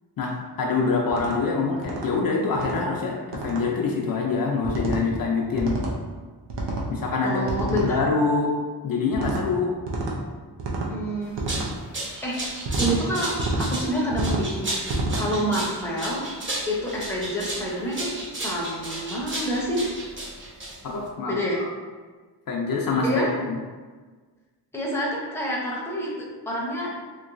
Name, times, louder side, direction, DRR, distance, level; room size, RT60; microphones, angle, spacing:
voice 1, 0.2-5.8 6.9-8.5 8.8-9.7 20.8-21.4 22.5-23.6, left 4 dB, 55° left, -1 dB, 0.5 m, -25 dB
sound 1, 1.1-1.4 1.8-2.1 2.6-2.8 3.3-3.6 4.6-5.0 5.6-6.0 6.5-6.9 7.5-7.9 9.1-9.4 9.9-10.2 10.6-10.9 11.4-11.7 12.7-13.0 13.4-13.7 14.1-14.5 14.9-15.2, right 2 dB, 85° right, 0.7 m, -28 dB
voice 2, 7.2-8.0 10.9-11.4 12.2-14.8 15.2-16.3 16.7-19.8 21.3-21.6 23.0-23.3 24.7-26.1 26.5-26.9, equal, 5° left, -4 dB, 0.7 m, -28 dB
sound 2, 11.2-21.1, right 1 dB, 30° right, 0.9 m, -33 dB
3.0 x 3.0 x 2.5 m, 1.4 s
wide cardioid pair, 105°, 41 cm